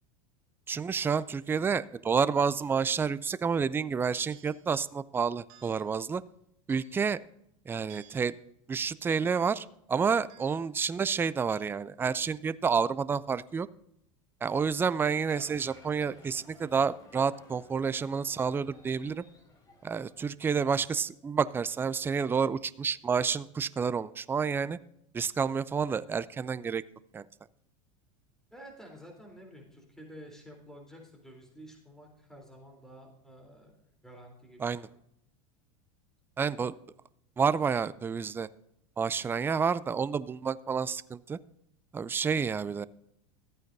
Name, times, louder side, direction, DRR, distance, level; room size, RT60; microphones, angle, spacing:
voice 1, 0.7-6.2 6.7-7.2 7.7-8.4 8.7-13.7 14.4-19.2 19.8-24.8 25.1-26.8 27.1-27.2 34.6-34.9 36.4-36.7 37.4-38.5 39.0-41.4 41.9-42.9, right 6 dB, 15° right, 16 dB, 0.4 m, -29 dB
sound 1, 4.3-4.7 5.5-5.9 6.7-7.2 7.9-8.3 9.1-9.5 10.3-10.7 11.5-11.7, right 11 dB, 55° right, 1.9 m, -57 dB
Applause, 15.3-20.3, left 2 dB, 20° left, 3.3 m, -56 dB
voice 2, 28.5-35.0, equal, 5° left, 1 dB, 3.6 m, -51 dB
14.0 x 8.9 x 2.7 m, 0.75 s
hypercardioid pair, 110°, 17 cm